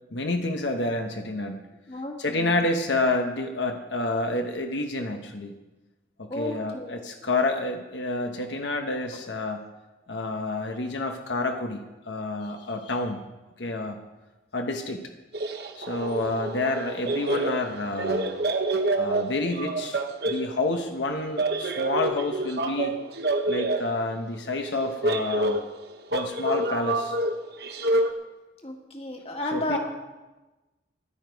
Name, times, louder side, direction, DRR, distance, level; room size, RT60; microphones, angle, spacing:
voice 1, 0.1-1.6 2.2-5.5 6.2-9.7 10.1-13.2 13.6-14.0 14.5-15.0 15.8-18.3 18.9-23.0 23.5-25.6 26.1-27.2 29.5-29.8, left 2 dB, 75° left, 4 dB, 1.1 m, -29 dB
voice 2, 1.9-2.6 6.3-6.9 28.6-29.8, left 1 dB, 30° left, 2 dB, 1.8 m, -32 dB
sound 1, 15.3-20.5 21.4-23.9 24.7-28.1, right 2 dB, 55° right, 1.1 m, -27 dB
15.0 x 11.0 x 4.7 m, 1.1 s
head